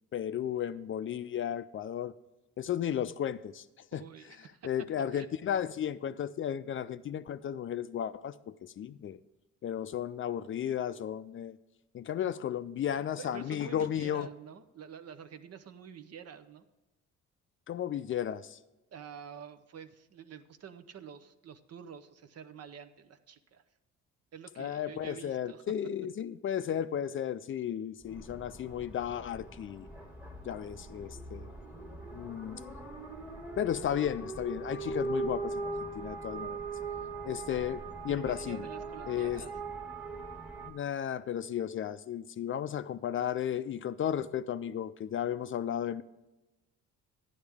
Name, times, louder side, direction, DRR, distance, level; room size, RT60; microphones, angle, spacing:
voice 1, 0.1-2.1 2.6-3.7 3.9-4.0 4.6-9.2 9.6-11.6 11.9-14.3 17.7-18.6 24.6-29.9 30.5-31.5 32.1-32.6 33.6-36.6 37.2-38.7 39.1-39.4 40.6-46.0, left 9 dB, 45° left, 13 dB, 0.4 m, -34 dB
voice 2, 3.9-4.7 5.1-5.3 13.2-16.7 18.9-23.6 24.3-25.6 38.1-39.5, right 7 dB, 55° right, 11 dB, 0.8 m, -48 dB
sound 1, 28.0-40.7, right 3 dB, 5° right, 1.4 m, -40 dB
11.0 x 9.7 x 3.5 m, 1.0 s
cardioid pair, 90°, 30 cm